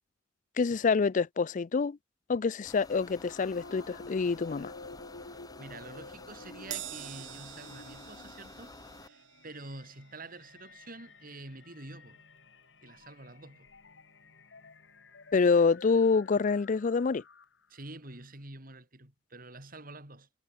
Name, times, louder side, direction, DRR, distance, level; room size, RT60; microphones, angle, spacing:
voice 1, 0.6-2.0 2.3-4.7 15.3-17.2, left 4 dB, 45° left, 0.4 m, -26 dB
sound 1, 2.6-9.1, left 3 dB, 20° left, 1.0 m, -51 dB
sound 2, 3.2-17.8, left 3 dB, 80° left, 1.7 m, -52 dB
voice 2, 5.2-12.2 12.8-13.7 17.7-20.3, right 2 dB, 50° right, 5.6 m, -47 dB
Crash cymbal, 6.7-13.3 13.7-13.9 14.9-15.0, right 12 dB, 80° right, 2.2 m, -48 dB
head